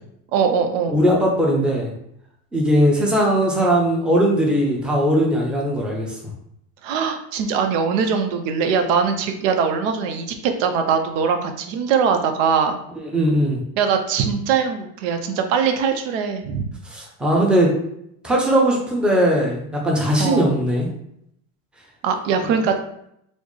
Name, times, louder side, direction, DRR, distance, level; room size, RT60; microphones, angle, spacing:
voice 1, 0.3-1.0 6.8-12.8 13.8-16.6 20.2-20.5 22.0-22.8, right 6 dB, 85° right, 6 dB, 0.6 m, -21 dB
voice 2, 0.9-1.9 2.5-6.2 13.0-13.6 16.9-17.7 18.2-20.9 22.4-22.5, equal, 5° right, -2 dB, 0.5 m, -19 dB
4.2 x 2.0 x 3.0 m, 0.75 s
cardioid pair, 135°, 37 cm